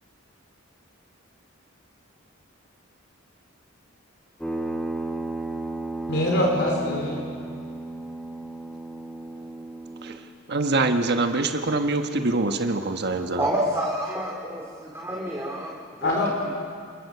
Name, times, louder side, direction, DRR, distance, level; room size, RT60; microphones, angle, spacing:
sound 1, 4.4-10.2, right 2 dB, 5° left, 1.3 m, -34 dB
voice 1, 6.1-7.2 16.0-16.5, left 1 dB, 60° left, -1 dB, 4.3 m, -24 dB
voice 2, 10.5-13.5, right 2 dB, 55° right, 6 dB, 1.3 m, -24 dB
voice 3, 13.4-16.5, right 1 dB, 15° right, -3 dB, 2.3 m, -29 dB
28.0 x 21.0 x 6.9 m, 2.2 s
head